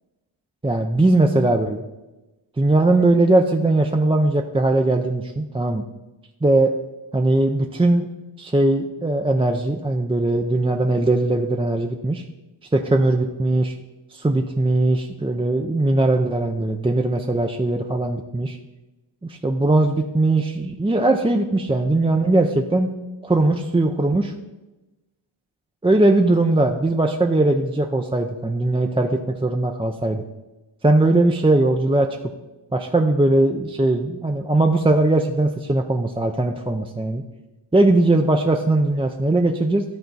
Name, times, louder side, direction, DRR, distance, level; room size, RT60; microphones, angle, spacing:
voice 1, 0.6-1.8 2.6-5.8 6.4-6.7 7.1-8.1 8.4-12.2 12.7-13.7 14.1-18.6 19.2-22.9 23.2-24.3 25.8-30.2 30.8-32.1 32.7-37.2 37.7-39.8, right 2 dB, 10° right, 3 dB, 0.4 m, -19 dB
12.5 x 4.5 x 4.0 m, 1.1 s
wide cardioid pair, 105°, 50 cm